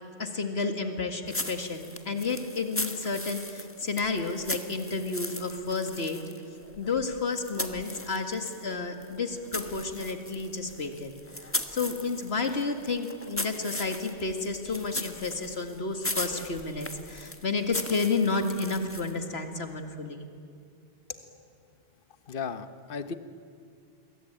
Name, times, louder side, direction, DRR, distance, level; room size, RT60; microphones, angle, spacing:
voice 1, 0.2-6.2 6.8-11.1 11.7-20.2, left 4 dB, 85° left, 6 dB, 2.3 m, -31 dB
sound 1, 1.3-8.7 9.0-19.3, left 1 dB, 15° left, 1.3 m, -38 dB
voice 2, 22.3-23.2, left 5 dB, 60° left, 11 dB, 1.2 m, -35 dB
28.0 x 22.0 x 8.9 m, 2.4 s
omnidirectional pair, 1.0 m